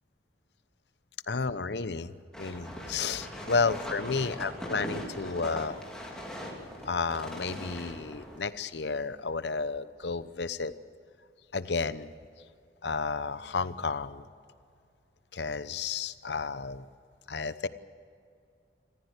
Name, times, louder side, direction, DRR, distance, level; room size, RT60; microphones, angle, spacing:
voice 1, 1.3-2.1 2.4-5.7 6.8-10.7 11.5-12.1 12.8-14.3 15.3-16.8 17.3-17.7, left 4 dB, 85° left, 14 dB, 0.9 m, -32 dB
sound 1, 2.3-8.4, equal, 5° left, 3.5 m, -40 dB
26.0 x 15.0 x 8.3 m, 2.4 s
head